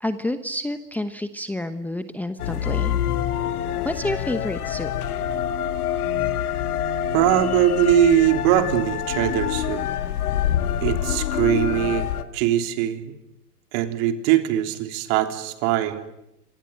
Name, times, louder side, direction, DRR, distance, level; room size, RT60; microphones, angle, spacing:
voice 1, 0.0-3.0 3.8-4.9, left 1 dB, 5° left, 9 dB, 1.0 m, -29 dB
sound 1, 2.4-12.2, left 10 dB, 65° left, 2.0 m, -26 dB
voice 2, 7.1-9.8 10.8-13.1 13.7-16.0, right 11 dB, 45° right, 6 dB, 3.6 m, -21 dB
26.5 x 24.0 x 9.1 m, 0.85 s
hypercardioid pair, 115°, 47 cm